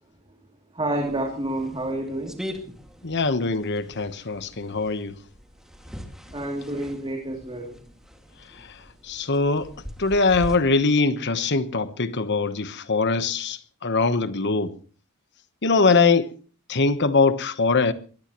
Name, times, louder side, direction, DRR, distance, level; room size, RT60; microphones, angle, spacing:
voice 1, 0.7-2.4 6.3-7.7, right 1 dB, 25° right, 2.9 m, -29 dB
sound 1, 0.9-10.6, equal, ahead, 2.2 m, -42 dB
voice 2, 3.0-5.2 8.6-8.7 9.0-9.7 10.0-14.8 15.6-16.3 16.7-17.9, left 4 dB, 50° left, 1.1 m, -22 dB
22.5 x 19.0 x 3.1 m
head